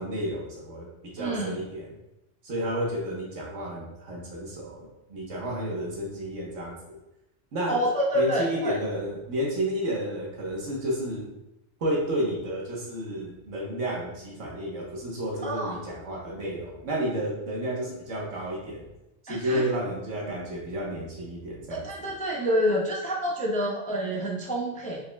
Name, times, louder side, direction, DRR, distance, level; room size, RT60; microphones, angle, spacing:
voice 1, 0.0-2.0 2.4-7.0 7.5-7.8 8.1-11.3 11.8-18.9 19.2-22.1, equal, 80° right, -3 dB, 1.5 m, -31 dB
voice 2, 1.2-1.6 7.7-8.7 15.4-15.8 19.3-19.6 21.7-25.0, equal, 10° left, -2 dB, 0.4 m, -27 dB
4.7 x 4.1 x 2.2 m, 0.93 s
omnidirectional pair, 1.3 m